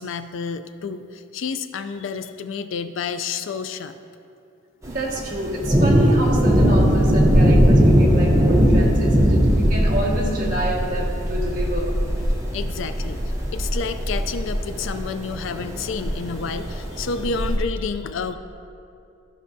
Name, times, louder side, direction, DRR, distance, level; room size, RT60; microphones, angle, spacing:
voice 1, 0.0-3.9 12.5-13.2 13.5-18.4, left 5 dB, 65° left, 10 dB, 0.4 m, -30 dB
Thunder, 4.8-17.6, equal, 15° right, 0.7 m, -20 dB
voice 2, 4.9-11.9, right 1 dB, 40° right, -5 dB, 1.5 m, -27 dB
14.0 x 6.1 x 2.6 m, 2.5 s
head